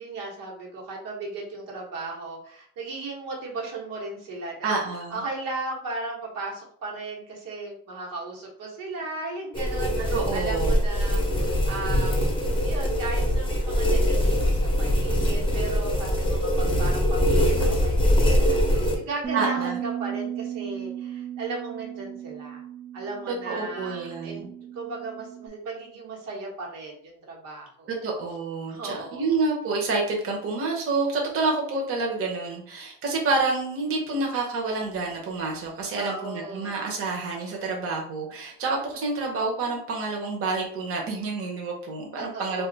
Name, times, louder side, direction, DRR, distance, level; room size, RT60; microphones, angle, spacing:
voice 1, 0.0-4.8 5.1-12.3 12.6-22.6 22.9-24.5 24.7-27.9 28.7-29.4 36.0-36.8 42.2-42.7, right 3 dB, 85° right, -2 dB, 1.1 m, -36 dB
voice 2, 4.6-5.2 10.1-10.8 19.3-19.8 23.3-24.5 27.9-42.7, right 3 dB, 45° right, -1 dB, 0.8 m, -28 dB
sound 1, 9.5-19.0, equal, 15° left, 0.7 m, -23 dB
Bass guitar, 19.2-25.5, right 10 dB, 25° right, 0.4 m, -35 dB
2.5 x 2.4 x 3.9 m, 0.62 s
cardioid pair, 135°, 33 cm